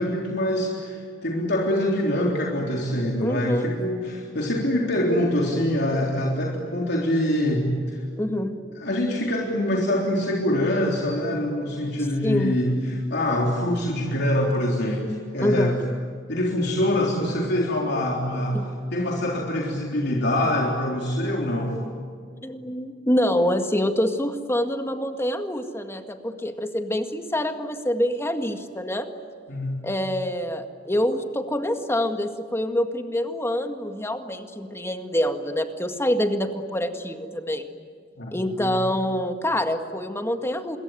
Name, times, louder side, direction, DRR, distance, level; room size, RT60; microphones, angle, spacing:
voice 1, 0.0-8.0 8.8-15.8 16.3-18.6 18.9-21.8 29.5-29.8 38.2-38.8, left 1 dB, 60° left, -1 dB, 3.6 m, -24 dB
voice 2, 3.2-3.8 8.2-8.6 12.2-12.6 15.4-15.8 18.5-18.7 22.4-29.1 29.8-37.7 38.3-40.8, left 1 dB, 15° left, 6 dB, 1.9 m, -26 dB
27.0 x 22.5 x 9.5 m, 2.2 s
head